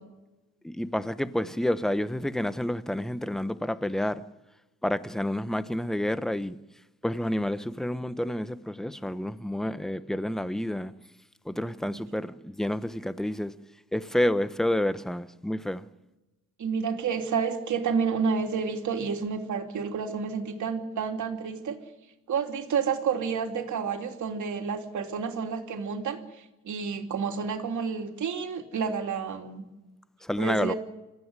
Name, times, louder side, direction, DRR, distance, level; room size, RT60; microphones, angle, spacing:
voice 1, 0.6-4.2 4.8-6.6 7.0-10.9 11.5-13.5 13.9-15.9 30.2-30.7, left 1 dB, ahead, 0.8 m, -29 dB
voice 2, 11.8-12.3 16.6-21.8 22.3-29.6 30.4-30.7, right 6 dB, 55° right, 3.2 m, -30 dB
27.5 x 14.5 x 9.7 m
cardioid pair, 140°, 34 cm